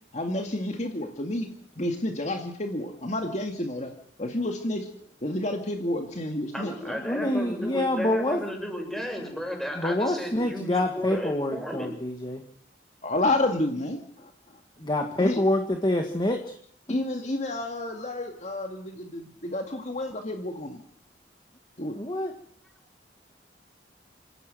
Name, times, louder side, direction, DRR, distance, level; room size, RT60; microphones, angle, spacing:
voice 1, 0.1-1.5 1.8-4.8 5.2-7.0 13.0-14.0 15.2-15.4 16.9-20.8 21.8-22.0, left 1 dB, 40° left, 4 dB, 2.2 m, -30 dB
voice 2, 6.5-11.9, equal, ahead, 2 dB, 6.7 m, -34 dB
voice 3, 7.1-8.4 9.8-12.4 14.8-16.5 22.0-22.3, left 1 dB, 25° left, 4 dB, 1.9 m, -26 dB
27.0 x 15.5 x 7.8 m, 0.63 s
head